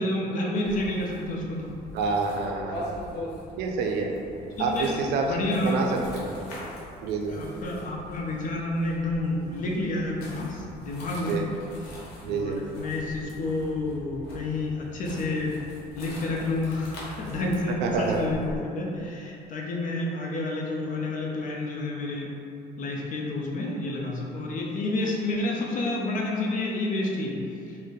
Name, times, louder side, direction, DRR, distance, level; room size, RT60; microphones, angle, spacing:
voice 1, 0.0-1.7 4.6-4.9 5.3-5.8 6.5-6.7 7.3-11.4 11.9-15.5 15.9-22.3 22.8-27.4, left 2 dB, 50° left, -2 dB, 0.6 m, -29 dB
sound 1, 0.6-18.6, equal, 80° left, 0.8 m, -43 dB
voice 2, 1.9-2.9 3.6-4.1 4.6-5.3 5.6-6.3 7.0-7.4 11.3-11.4 12.2-12.6 17.8-18.2, right 4 dB, 85° right, 2 dB, 0.4 m, -27 dB
2.6 x 2.1 x 3.7 m, 2.6 s
cardioid pair, 110°, 17 cm